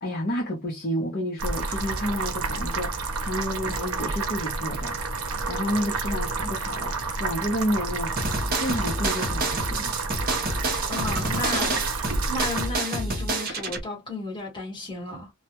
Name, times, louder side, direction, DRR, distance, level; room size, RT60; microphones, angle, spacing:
voice 1, 0.0-10.0, equal, 45° left, 0.6 m, -30 dB
sound 1, 1.4-12.7, right 4 dB, 80° right, 0.6 m, -30 dB
sound 2, 8.2-13.8, right 2 dB, 40° right, 0.7 m, -28 dB
voice 2, 10.9-15.3, left 2 dB, 20° left, 1.2 m, -34 dB
2.2 x 2.1 x 2.8 m
head